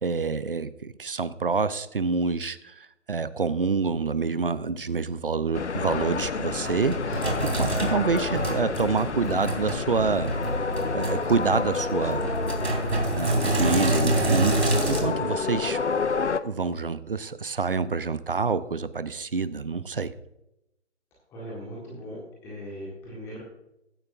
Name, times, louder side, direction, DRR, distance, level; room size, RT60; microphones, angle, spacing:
voice 1, 0.0-10.3 10.9-12.2 13.1-14.6 14.9-15.8 16.4-20.1, right 4 dB, 50° right, 15 dB, 0.6 m, -27 dB
sound 1, 5.5-16.4, left 5 dB, 70° left, 0.7 m, -29 dB
Sink (filling or washing), 6.2-15.0, right 2 dB, 65° right, 3.3 m, -28 dB
voice 2, 7.1-7.5 21.3-23.4, equal, 5° left, -5 dB, 1.6 m, -39 dB
15.0 x 11.0 x 2.6 m, 0.86 s
figure-of-eight pair, 150°, 36 cm